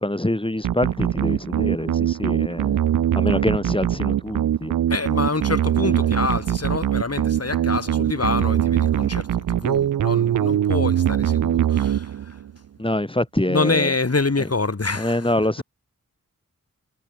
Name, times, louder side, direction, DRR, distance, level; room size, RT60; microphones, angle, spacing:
voice 1, 0.0-2.8 3.2-4.7 12.8-13.9 15.0-15.6, left 1 dB, 15° left, 4.0 m, -25 dB
sound 1, 0.6-12.5, right 10 dB, 65° right, 0.5 m, -22 dB
voice 2, 4.9-12.4 13.5-15.3, left 3 dB, 45° left, 3.4 m, -26 dB
cardioid pair, 50°, 33 cm